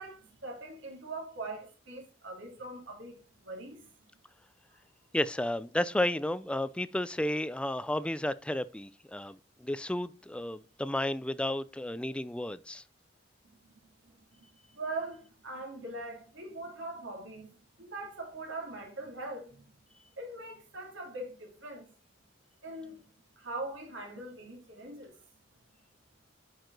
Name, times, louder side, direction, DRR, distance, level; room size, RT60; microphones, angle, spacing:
voice 1, 0.0-3.9 13.7-13.8 14.7-19.7 20.2-21.9 22.6-23.0 23.4-25.1, right 2 dB, 75° right, 2.7 m, -42 dB
voice 2, 5.1-12.8, left 1 dB, 5° left, 0.4 m, -32 dB
8.9 x 4.8 x 3.9 m
head